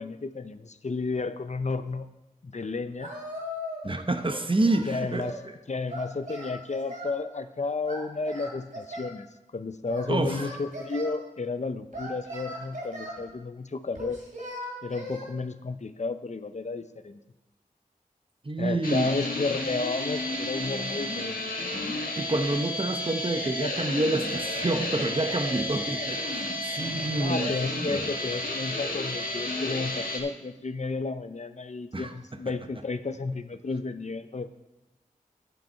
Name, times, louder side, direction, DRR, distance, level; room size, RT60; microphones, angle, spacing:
voice 1, 0.0-2.1 2.4-3.1 4.9-5.4 5.7-9.3 9.5-14.2 14.8-17.2 18.6-21.4 27.2-34.5, left 3 dB, 50° left, 11 dB, 0.6 m, -32 dB
Singing, 3.0-3.9 4.2-5.4 5.9-7.2 7.9-9.2 9.9-11.1 11.9-13.2 13.9-15.3, equal, 65° right, 3.4 m, -38 dB
voice 2, 3.8-5.3 10.1-10.4 18.4-19.1 22.2-28.1 31.9-32.1, right 2 dB, 35° right, 7 dB, 0.9 m, -28 dB
sound 1, 18.8-30.2, left 1 dB, 75° left, 1.6 m, -32 dB
10.5 x 7.9 x 4.5 m, 1.0 s
wide cardioid pair, 50°, 15 cm